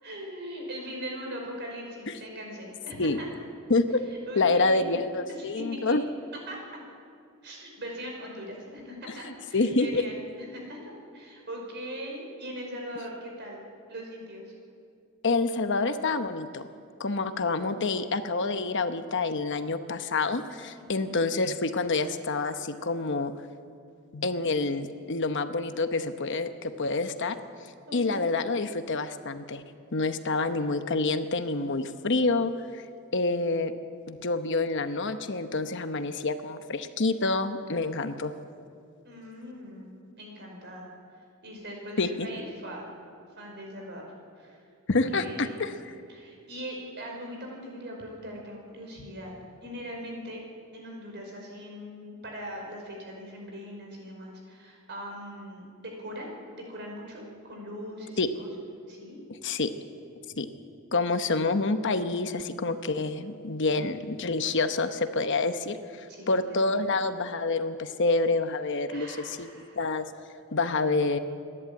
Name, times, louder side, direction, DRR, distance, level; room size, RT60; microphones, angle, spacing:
voice 1, 0.0-3.4 4.1-5.0 5.3-6.0 6.5-6.6 7.4-13.6 13.9-14.5 20.8-21.1 27.9-28.3 39.0-39.9 40.2-42.9 43.4-44.6 44.9-45.6 46.1-49.3 49.6-50.4 50.7-58.5 58.9-59.2 66.1-67.0 68.9-69.8, equal, 50° right, 0 dB, 5.3 m, -41 dB
voice 2, 3.7-4.0 4.4-6.0 9.5-10.0 15.2-16.6 17.0-23.3 24.1-27.4 27.9-29.6 29.9-32.8 33.1-33.7 34.1-38.3 42.0-42.3 44.9-45.8 58.2-58.3 59.4-59.7 60.4-60.5 60.9-69.5 69.8-70.1 70.5-71.2, left 3 dB, 55° left, 9 dB, 1.0 m, -27 dB
27.5 x 11.0 x 8.8 m, 2.3 s
head